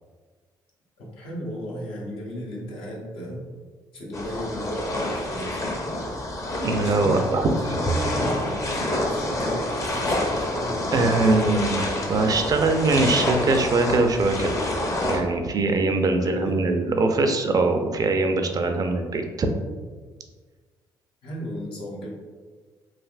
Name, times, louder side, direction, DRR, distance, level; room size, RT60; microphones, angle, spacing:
voice 1, 1.0-3.5 3.9-5.8 6.8-10.5 16.2-16.6 21.2-22.1, equal, 75° left, -3 dB, 0.8 m, -34 dB
sound 1, 4.1-15.2, left 1 dB, 35° left, 0.6 m, -27 dB
voice 2, 6.6-7.8 10.9-14.5 15.1-19.5, right 3 dB, 40° right, 5 dB, 0.4 m, -22 dB
3.3 x 2.5 x 2.4 m, 1.4 s
supercardioid pair, 60°, 9 cm